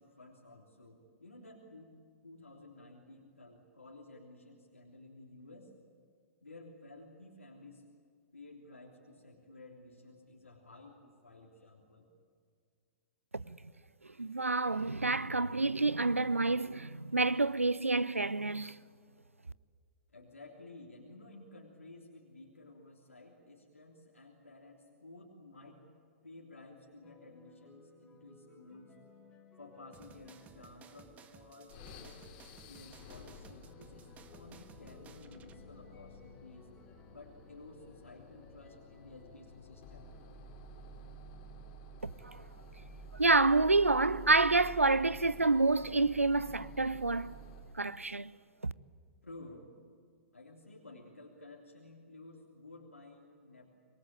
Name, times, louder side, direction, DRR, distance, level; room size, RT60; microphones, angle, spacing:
voice 1, 0.0-1.9 2.2-5.7 6.4-7.8 8.3-12.1 20.1-25.8 26.2-28.9 29.6-32.2 32.7-36.7 37.1-40.1 49.2-49.7 50.3-53.7, left 2 dB, 80° left, 3.2 m, -54 dB
voice 2, 14.2-18.8 42.0-42.4 43.1-47.3 47.7-48.3 48.6-48.7, right 3 dB, 80° right, 0.6 m, -28 dB
sound 1, 27.0-40.3, left 2 dB, 10° left, 4.7 m, -61 dB
sound 2, 29.9-35.6, right 7 dB, 20° right, 1.3 m, -58 dB
sound 3, 31.7-47.8, right 2 dB, 40° left, 3.5 m, -51 dB
26.0 x 22.0 x 8.9 m
figure-of-eight pair, 110°, 7 cm